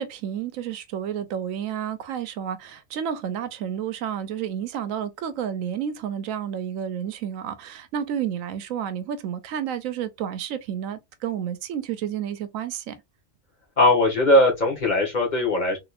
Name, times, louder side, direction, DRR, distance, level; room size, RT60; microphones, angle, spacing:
voice 1, 0.0-12.9, right 9 dB, 85° right, 1.0 m, -30 dB
voice 2, 13.8-15.8, left 1 dB, 35° left, 1.2 m, -19 dB
3.4 x 2.9 x 2.4 m
omnidirectional pair, 1.4 m